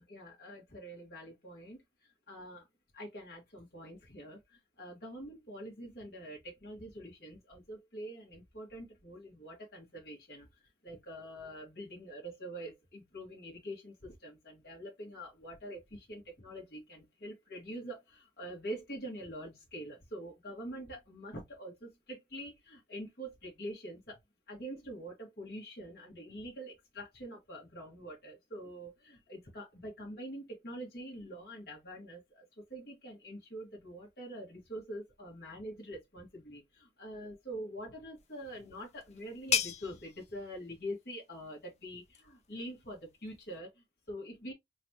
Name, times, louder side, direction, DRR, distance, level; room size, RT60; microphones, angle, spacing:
voice 1, 0.0-2.7 2.9-24.2 24.5-44.5, equal, 55° left, 2.0 m, -45 dB
sound 1, 38.2-43.6, left 8 dB, 35° left, 0.5 m, -39 dB
4.0 x 3.3 x 2.9 m
head